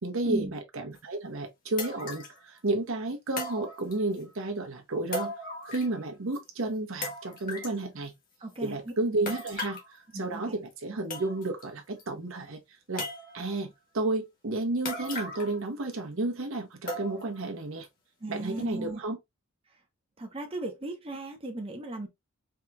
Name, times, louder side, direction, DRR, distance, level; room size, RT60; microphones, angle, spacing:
voice 1, 0.0-5.3 5.7-8.1 8.6-12.6 12.9-13.1 13.3-17.9 18.3-19.2, right 2 dB, 60° right, 0.8 m, -32 dB
sound 1, 1.0-1.1 1.8-2.4 3.4-4.2 5.1-6.0 6.3-6.4 7.0-7.8 9.3-9.9 10.7-10.8 11.1-11.6 12.0-12.1 13.0-13.6 14.8-15.6 15.9-16.0 16.9-17.4 17.8-17.9 18.6-18.7, left 1 dB, 40° left, 1.4 m, -37 dB
voice 2, 8.4-8.9 10.1-10.5 18.2-19.0 20.2-22.1, right 2 dB, 25° right, 0.7 m, -36 dB
4.6 x 2.9 x 2.3 m
head